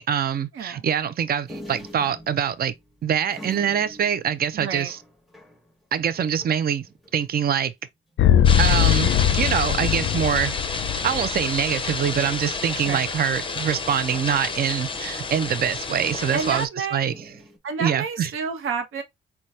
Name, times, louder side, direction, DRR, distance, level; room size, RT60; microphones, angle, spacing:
voice 1, 0.0-2.7 3.0-5.0 5.9-6.9 7.1-7.7 8.6-17.1 17.8-18.3, right 8 dB, 45° right, 0.5 m, -24 dB
voice 2, 0.5-0.9 4.5-4.9 12.9-13.1 16.3-17.1 17.6-19.0, right 5 dB, 80° right, 0.8 m, -29 dB
sound 1, 1.5-7.4 7.8-7.9 8.1-8.6 9.5-10.1 11.4-11.9 13.5-14.9 17.1-17.6, equal, ahead, 1.0 m, -45 dB
sound 2, 8.2-12.2, left 11 dB, 70° left, 0.4 m, -21 dB
sound 3, 8.4-16.7, left 4 dB, 25° left, 0.6 m, -30 dB
4.0 x 2.3 x 3.2 m
cardioid pair, 90°, 21 cm